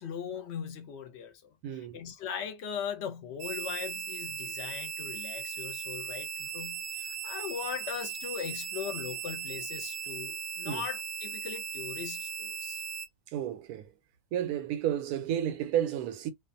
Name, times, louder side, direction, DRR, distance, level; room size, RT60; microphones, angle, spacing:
voice 1, 0.0-1.5 1.9-12.8, left 7 dB, 60° left, 0.8 m, -39 dB
voice 2, 1.6-2.0 10.6-10.9 13.3-14.0 14.3-16.3, right 10 dB, 90° right, 1.1 m, -32 dB
sound 1, 3.4-13.1, right 7 dB, 65° right, 0.8 m, -38 dB
2.5 x 2.3 x 2.5 m
omnidirectional pair, 1.5 m